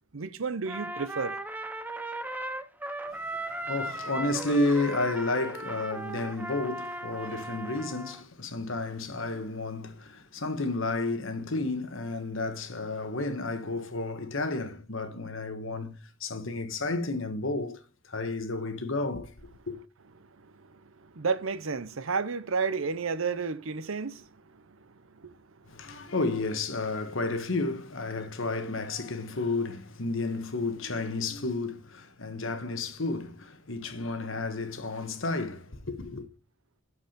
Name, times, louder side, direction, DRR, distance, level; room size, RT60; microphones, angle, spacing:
voice 1, 0.1-1.4 7.2-7.3 20.4-25.4 25.9-26.0, right 5 dB, 70° right, 0.7 m, -32 dB
Trumpet, 0.7-8.2, right 1 dB, 10° right, 0.6 m, -37 dB
voice 2, 3.6-15.9 16.2-17.8 18.1-19.3 19.7-19.8 25.7-36.3, left 2 dB, 65° left, 1.3 m, -31 dB
12.0 x 4.8 x 5.1 m
head